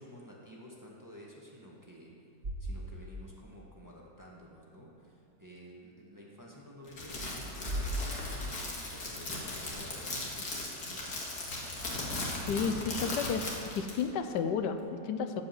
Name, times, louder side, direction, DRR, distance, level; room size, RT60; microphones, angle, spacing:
voice 1, 0.0-2.2 2.6-11.2, equal, 10° right, -3 dB, 1.4 m, -52 dB
sound 1, 2.4-3.4 3.7-3.8 7.0-9.1, equal, 40° right, 1.7 m, -38 dB
Crackle, 6.9-14.0, left 2 dB, 65° left, 2.3 m, -38 dB
voice 2, 12.5-13.5 13.8-15.4, left 6 dB, 80° left, 8 dB, 1.2 m, -32 dB
14.0 x 5.2 x 7.6 m, 2.7 s
omnidirectional pair, 1.9 m